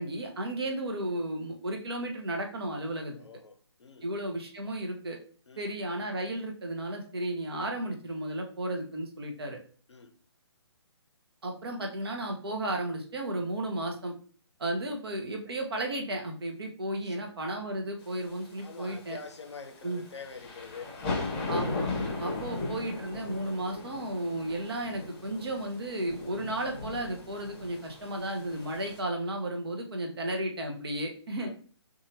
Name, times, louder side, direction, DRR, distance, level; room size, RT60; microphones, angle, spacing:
voice 1, 0.0-3.1 4.0-5.2 5.6-9.6 11.4-14.2 14.6-19.2 19.8-20.0 21.5-21.9 22.2-31.5, right 1 dB, 60° right, 0.8 m, -34 dB
voice 2, 3.1-4.1 5.5-5.7 9.9-10.1 17.0-17.2 18.6-21.2 31.4-31.5, left 5 dB, 75° left, 0.5 m, -46 dB
sound 1, 18.1-29.0, left 3 dB, 20° left, 0.8 m, -37 dB
2.7 x 2.4 x 2.8 m
figure-of-eight pair, 140°, 15 cm